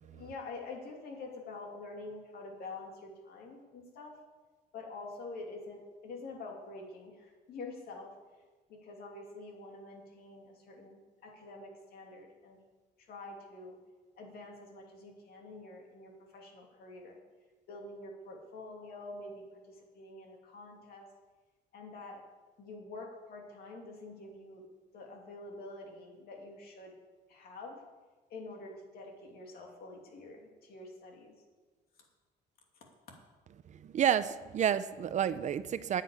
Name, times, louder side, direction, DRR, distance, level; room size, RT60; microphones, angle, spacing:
voice 1, 0.0-4.2 4.7-8.1 8.7-12.6 13.0-13.8 14.2-17.2 17.7-21.1 21.7-22.2 22.6-24.6 24.9-27.0 27.3-27.8 28.3-31.3, left 3 dB, 65° left, 1 dB, 2.8 m, -47 dB
voice 2, 33.7-36.0, right 9 dB, 45° right, 13 dB, 0.6 m, -30 dB
9.6 x 8.3 x 8.5 m, 1.3 s
cardioid pair, 110°, 17 cm